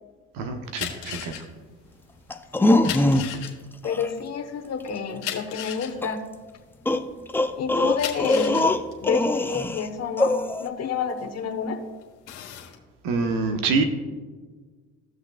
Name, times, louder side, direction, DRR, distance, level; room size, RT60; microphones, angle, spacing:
voice 1, 0.3-1.3 13.0-13.8, right 4 dB, 75° right, 6 dB, 1.1 m, -25 dB
sound 1, 0.7-7.3 7.8-11.6 12.0-12.8, left 10 dB, 85° left, 1.4 m, -36 dB
Slit Throat, 2.3-3.5 3.8-4.1 6.0-6.1 6.9-9.9 10.2-10.7, left 2 dB, 5° left, 0.5 m, -22 dB
voice 2, 3.8-6.3 7.6-8.6 9.0-11.8, left 6 dB, 45° left, 5 dB, 1.2 m, -29 dB
17.0 x 6.2 x 2.4 m, 1.4 s
supercardioid pair, 75°, 34 cm